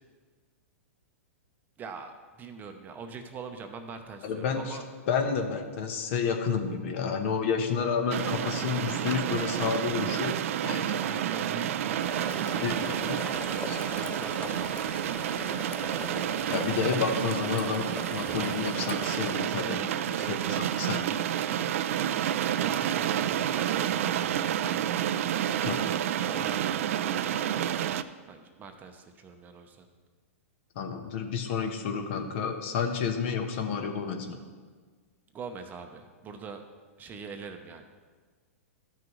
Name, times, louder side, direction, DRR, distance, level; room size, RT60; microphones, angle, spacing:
voice 1, 1.8-4.8 11.0-13.3 13.9-15.2 19.6-20.6 22.6-25.1 26.2-27.8 28.3-29.9 35.3-36.6 37.0-37.8, right 5 dB, 20° right, 6 dB, 0.7 m, -43 dB
voice 2, 4.2-4.8 5.1-10.4 10.6-11.0 12.6-13.2 13.7-13.8 16.2-17.9 18.1-19.8 20.3-21.1 25.6-25.8 30.7-34.4, left 6 dB, 55° left, 5 dB, 1.1 m, -30 dB
sound 1, 8.1-28.0, right 10 dB, 65° right, 0.4 m, -30 dB
sound 2, 12.0-19.7, left 5 dB, 15° left, 0.3 m, -41 dB
13.5 x 6.1 x 3.1 m, 1.5 s
hypercardioid pair, 130°, 8 cm